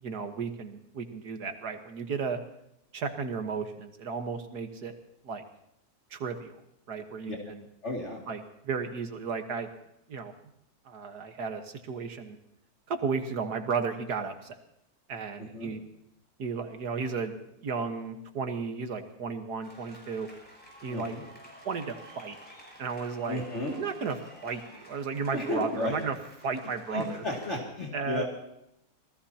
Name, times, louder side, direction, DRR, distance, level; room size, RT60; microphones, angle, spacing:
voice 1, 0.0-2.4 2.9-4.9 5.2-5.4 6.1-6.6 6.9-7.7 8.3-9.7 10.1-10.3 10.9-12.4 12.9-14.6 15.1-15.8 16.4-17.3 17.6-20.3 20.8-21.2 21.6-22.4 22.8-23.4 23.8-24.2 24.4-26.2 26.4-27.2 27.9-28.2, right 5 dB, 85° right, 6 dB, 2.0 m, -34 dB
voice 2, 7.8-8.3 15.4-15.7 20.9-21.2 23.3-23.7 25.3-26.0 26.9-28.2, left 1 dB, 45° left, -2 dB, 2.8 m, -33 dB
sound 1, 19.6-27.6, equal, 5° left, 6.2 m, -51 dB
26.5 x 18.5 x 2.9 m, 0.81 s
omnidirectional pair, 1.6 m